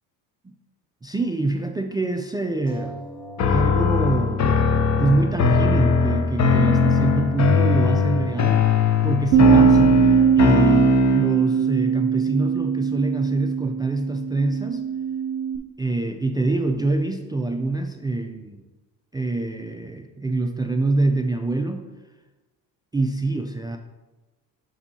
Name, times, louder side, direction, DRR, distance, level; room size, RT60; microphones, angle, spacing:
voice 1, 1.0-3.1 3.5-4.7 5.0-14.9 15.8-18.6 19.1-21.9 22.9-23.8, right 2 dB, 10° right, 5 dB, 0.3 m, -25 dB
sound 1, 2.7-7.7 8.4-8.5 8.8-8.9, equal, 10° left, 1.8 m, -44 dB
sound 2, 3.4-11.5, left 5 dB, 40° left, 0.7 m, -20 dB
Bass guitar, 9.3-15.6, right 8 dB, 75° right, 0.6 m, -20 dB
6.9 x 5.4 x 2.8 m, 1.1 s
supercardioid pair, 80°, 41 cm